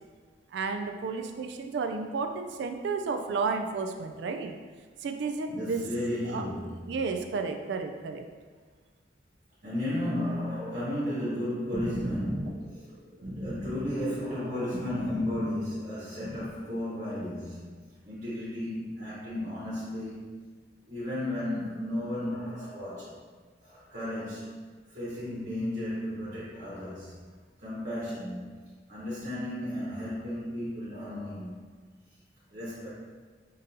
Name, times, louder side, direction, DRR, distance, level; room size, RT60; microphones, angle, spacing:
voice 1, 0.5-4.6 5.0-5.9 6.3-6.4 6.9-8.3, right 4 dB, 70° right, 6 dB, 0.3 m, -32 dB
voice 2, 5.5-7.0 9.6-12.9 13.2-17.7 18.0-20.3 20.8-23.2 23.6-24.6 24.9-27.2 27.6-31.6 32.5-32.9, left 1 dB, 55° right, -9 dB, 1.1 m, -34 dB
sound 1, 11.3-16.5, equal, 85° right, 0.7 m, -38 dB
5.2 x 2.6 x 2.7 m, 1.5 s
head